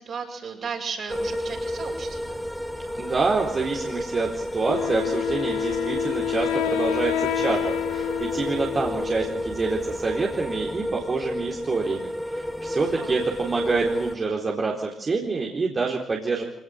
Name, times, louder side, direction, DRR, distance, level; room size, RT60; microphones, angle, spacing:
voice 1, 0.0-2.4 8.8-9.1 12.9-13.2, right 5 dB, 55° right, 1 dB, 7.9 m, -35 dB
sound 1, 1.1-14.1, left 1 dB, 5° left, 3.8 m, -31 dB
voice 2, 3.0-16.4, right 4 dB, 40° right, -1 dB, 4.2 m, -27 dB
Wind instrument woodwind instrument, 4.7-9.5, left 12 dB, 80° left, 1.5 m, -28 dB
25.5 x 18.5 x 8.1 m, 0.76 s
hypercardioid pair, 50°, 0 cm